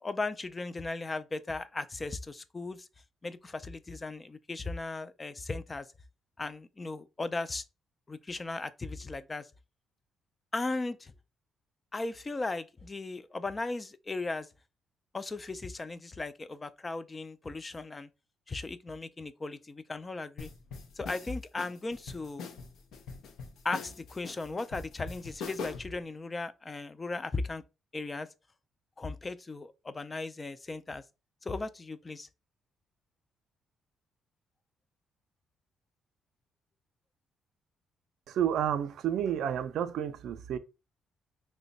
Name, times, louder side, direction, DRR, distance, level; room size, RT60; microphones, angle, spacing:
voice 1, 0.0-2.9 3.2-5.9 6.4-7.6 8.1-9.5 10.5-11.1 11.9-14.5 15.1-18.1 18.5-20.5 21.0-22.5 23.6-27.6 27.9-28.3 29.0-31.0 31.4-32.3, left 3 dB, 25° left, 0.3 m, -37 dB
supra beat straight hiphop, 20.4-26.0, left 5 dB, 80° left, 0.5 m, -43 dB
voice 2, 38.3-40.6, right 9 dB, 75° right, 0.4 m, -30 dB
3.0 x 2.1 x 3.8 m
cardioid pair, 90°, 0 cm